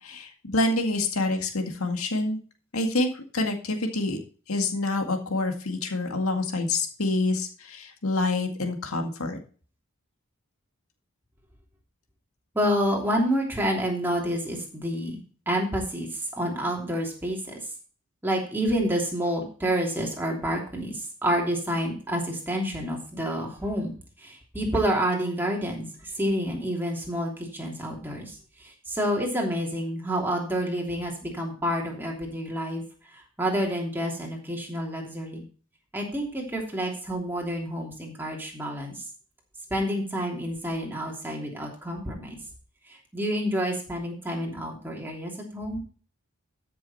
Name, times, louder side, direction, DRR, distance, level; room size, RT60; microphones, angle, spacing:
voice 1, 0.0-2.4 2.7-4.2 4.5-9.4, left 2 dB, 90° left, 4 dB, 2.0 m, -27 dB
voice 2, 12.5-17.6 18.2-32.8 33.1-35.4 35.9-39.0 39.7-42.4 42.9-45.8, equal, 10° right, -1 dB, 3.0 m, -29 dB
13.5 x 6.9 x 4.3 m, 0.40 s
head